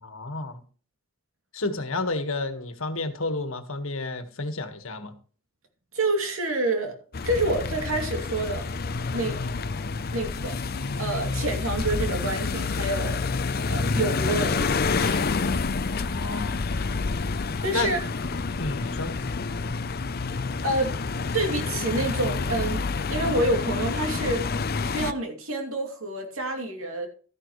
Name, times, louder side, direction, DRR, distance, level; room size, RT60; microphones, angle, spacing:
voice 1, 0.0-0.6 1.5-5.1 15.8-17.0 17.7-17.9 18.6-19.1, left 2 dB, 70° left, 1.6 m, -31 dB
voice 2, 5.9-6.9 7.2-8.7 9.1-9.4 10.1-13.2 13.7-15.2 17.6-18.0 20.6-21.0 21.3-24.5 24.8-27.1, right 2 dB, 70° right, 2.8 m, -28 dB
sound 1, 7.1-25.1, left 4 dB, 45° left, 0.6 m, -28 dB
13.5 x 10.5 x 3.2 m
head